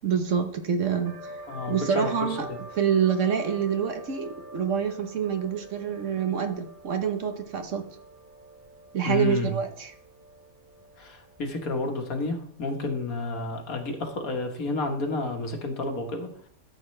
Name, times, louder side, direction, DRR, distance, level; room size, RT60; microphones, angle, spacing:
voice 1, 0.0-1.4 1.7-2.5 2.7-7.8 8.9-9.9, right 7 dB, 60° right, 6 dB, 1.3 m, -26 dB
sound 1, 1.1-12.4, right 1 dB, 40° right, 1.5 m, -46 dB
voice 2, 1.5-2.1 9.0-9.5 11.0-16.3, left 3 dB, 75° left, 3 dB, 1.8 m, -30 dB
13.0 x 7.9 x 3.2 m, 0.65 s
omnidirectional pair, 1.5 m